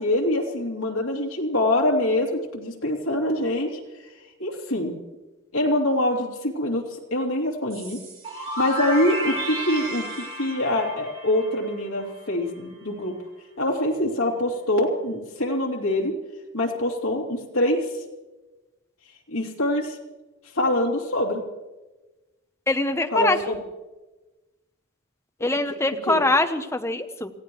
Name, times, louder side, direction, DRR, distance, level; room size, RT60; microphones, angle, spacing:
voice 1, 0.0-3.8 4.4-4.9 5.5-8.0 8.4-13.2 13.6-16.1 16.5-17.9 19.3-20.0 20.5-21.4 23.1-23.6 25.4-25.5 26.1-26.2, left 1 dB, 75° left, -1 dB, 2.8 m, -24 dB
sound 1, 7.7-12.4, right 1 dB, 30° right, 3.1 m, -32 dB
voice 2, 22.7-23.5 25.4-27.3, left 2 dB, 15° left, 7 dB, 0.8 m, -23 dB
28.0 x 16.0 x 3.1 m, 1.1 s
head